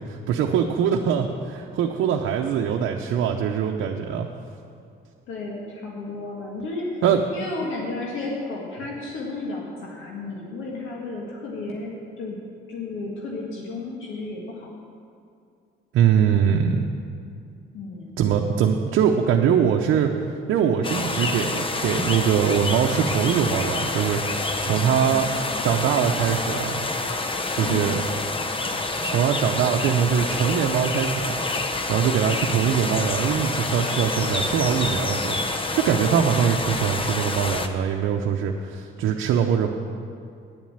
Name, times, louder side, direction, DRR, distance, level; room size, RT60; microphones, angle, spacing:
voice 1, 0.1-4.3 7.0-7.2 15.9-16.9 18.2-20.1 20.5-25.3 25.6-26.8 27.5-28.0 29.0-31.3 31.9-35.4 35.7-39.7, right 8 dB, 85° right, 1 dB, 0.7 m, -22 dB
voice 2, 5.3-7.0 7.3-12.4 12.7-14.7 17.7-18.2 24.9-25.3 27.6-28.1, left 3 dB, 85° left, -2 dB, 1.8 m, -33 dB
sound 1, 20.8-37.7, left 2 dB, 25° left, 0.8 m, -27 dB
9.7 x 7.4 x 8.7 m, 2.4 s
cardioid pair, 90°, 20 cm